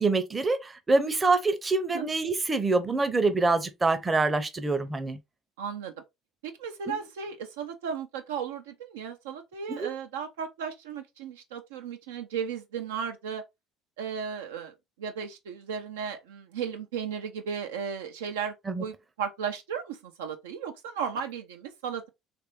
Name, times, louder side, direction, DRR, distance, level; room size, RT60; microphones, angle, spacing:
voice 1, 0.0-5.2 6.9-7.0 9.7-9.9 18.7-18.8, right 3 dB, 20° right, 0.6 m, -25 dB
voice 2, 5.6-5.9 6.4-13.4 14.0-18.5 18.8-22.1, right 7 dB, 75° right, 0.4 m, -35 dB
3.2 x 2.5 x 3.0 m
figure-of-eight pair, 55°, 0 cm